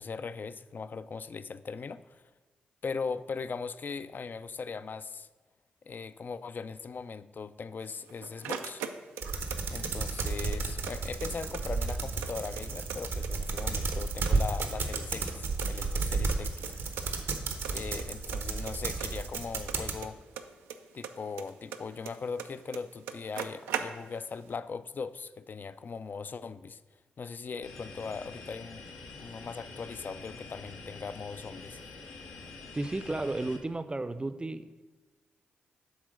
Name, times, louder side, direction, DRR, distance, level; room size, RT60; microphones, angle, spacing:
voice 1, 0.0-2.3 2.8-5.3 5.9-8.9 9.7-17.1 17.7-20.2 20.9-26.8 27.2-31.8, left 5 dB, 50° left, 14 dB, 0.4 m, -39 dB
sound 1, 7.8-9.6 9.8-10.9 11.2-11.3 11.5-13.0 13.2-14.0 14.3-15.7 16.0-16.1 16.3-16.4 16.6-16.7 17.0-17.4 17.6-18.1 18.3-20.8 21.0-22.5 22.7-22.8 23.1-24.3, right 8 dB, 90° right, 0.4 m, -39 dB
sound 2, 9.2-20.0, right 4 dB, 75° right, 0.8 m, -32 dB
sound 3, 27.6-33.6, left 3 dB, 90° left, 1.0 m, -46 dB
voice 2, 32.7-34.8, right 2 dB, 25° right, 13 dB, 0.5 m, -33 dB
8.0 x 3.7 x 6.4 m, 1.2 s
supercardioid pair, 40°, 4 cm